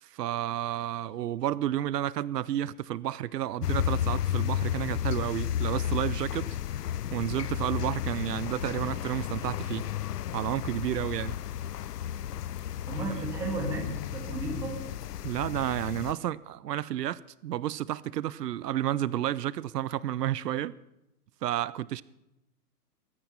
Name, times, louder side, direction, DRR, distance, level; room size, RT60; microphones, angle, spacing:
voice 1, 0.0-6.6 7.1-9.9 10.3-11.4 15.2-20.7 21.4-22.0, right 12 dB, 85° right, 0.6 m, -31 dB
sound 1, 3.6-16.1, left 10 dB, 80° left, 0.7 m, -33 dB
voice 2, 12.6-13.9 14.1-14.8, right 2 dB, 5° right, 1.7 m, -34 dB
21.0 x 9.5 x 5.7 m
hypercardioid pair, 170°, 47 cm